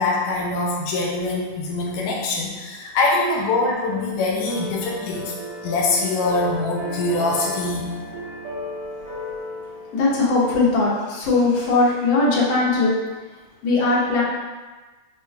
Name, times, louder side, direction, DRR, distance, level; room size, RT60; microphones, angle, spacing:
voice 1, 0.0-5.3 5.6-7.9, left 3 dB, 85° left, -1 dB, 2.0 m, -23 dB
sound 1, 4.4-10.3, left 1 dB, 70° right, 1.9 m, -34 dB
voice 2, 9.9-12.9 13.6-14.2, left 3 dB, 65° left, -5 dB, 1.7 m, -19 dB
5.3 x 2.2 x 3.2 m, 1.3 s
omnidirectional pair, 3.6 m